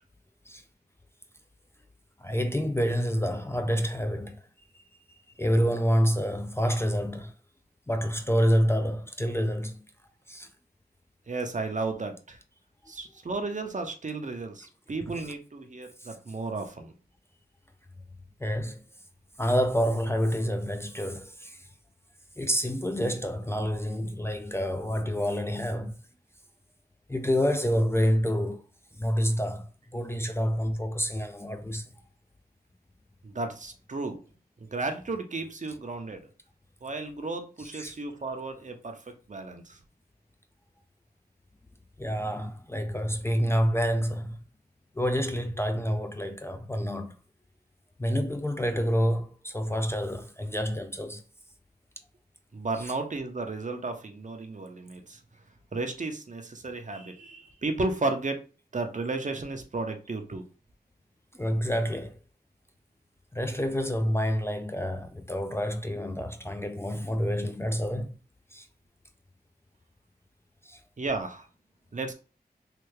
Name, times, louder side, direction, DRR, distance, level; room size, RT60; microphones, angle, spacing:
voice 1, 2.2-4.4 5.4-7.3 7.9-9.8 10.3-10.5 16.0-16.1 18.4-18.8 19.4-21.6 22.4-25.9 27.1-28.6 29.0-31.8 37.7-37.9 42.0-44.4 45.0-47.2 48.0-51.2 52.8-52.9 61.4-62.2 63.3-68.1 68.5-68.7 70.6-70.8, equal, 15° left, 0.4 m, -28 dB
voice 2, 11.3-12.4 12.9-16.9 33.2-34.2 34.7-36.2 36.8-39.0 39.3-39.8 52.5-55.2 55.7-58.4 58.7-60.4 71.0-71.5 71.9-72.1, right 3 dB, 50° right, 0.7 m, -33 dB
3.3 x 2.3 x 3.2 m
wide cardioid pair, 50°, 17 cm